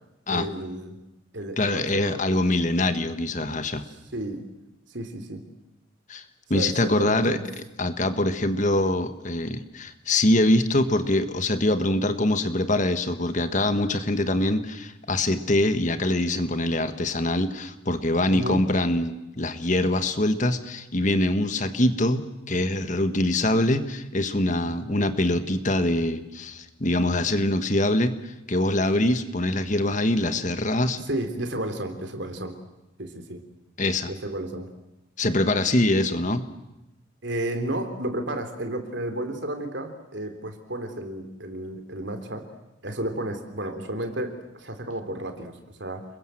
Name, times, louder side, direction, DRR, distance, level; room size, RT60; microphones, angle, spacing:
voice 1, 0.3-1.0 1.3-2.2 4.1-4.4 4.9-5.4 6.5-7.4 18.3-18.6 31.1-32.6 33.0-33.4 34.1-34.7 37.2-42.5 42.8-46.1, right 1 dB, 60° right, 7 dB, 3.6 m, -32 dB
voice 2, 1.6-3.8 6.1-6.2 6.5-7.4 7.8-31.0 33.8-34.1 35.2-36.4, left 1 dB, 40° left, 9 dB, 1.6 m, -24 dB
30.0 x 22.0 x 7.8 m, 0.94 s
head